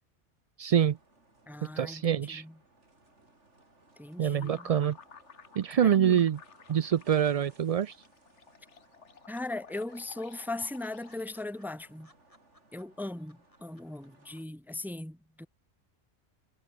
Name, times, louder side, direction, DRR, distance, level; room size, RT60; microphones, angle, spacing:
voice 1, 0.6-1.0 1.8-2.4 4.2-5.0 5.6-6.4 6.7-8.0, right 9 dB, 70° right, 0.3 m, -25 dB
sound 1, 0.8-14.5, right 2 dB, 90° right, 4.9 m, -63 dB
voice 2, 1.5-2.5 4.0-4.7 5.7-6.2 9.3-12.1 12.7-15.5, left 2 dB, ahead, 0.6 m, -39 dB
sound 2, 4.3-11.6, left 6 dB, 85° left, 1.7 m, -54 dB
sound 3, 8.0-8.7 8.9-9.0 9.3-9.4 9.7-14.1 14.4-14.5, left 1 dB, 30° left, 7.4 m, -62 dB
omnidirectional pair, 1.2 m